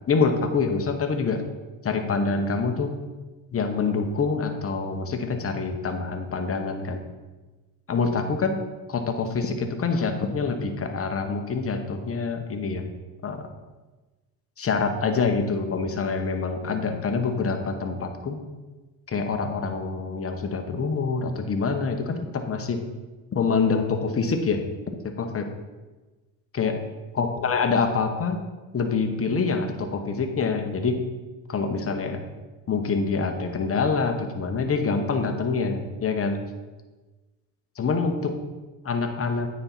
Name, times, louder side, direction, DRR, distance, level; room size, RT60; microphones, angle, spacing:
voice 1, 0.1-1.4 1.8-3.0 3.5-7.0 7.9-8.6 8.9-12.8 13.2-13.5 14.6-18.4 19.1-22.8 23.3-25.5 26.5-26.8 27.1-28.4 28.7-31.0 31.5-32.2 32.7-36.4 37.8-38.4 38.8-39.5, left 4 dB, 30° left, 5 dB, 1.1 m, -26 dB
8.8 x 4.4 x 4.1 m, 1.2 s
supercardioid pair, 75°, 47 cm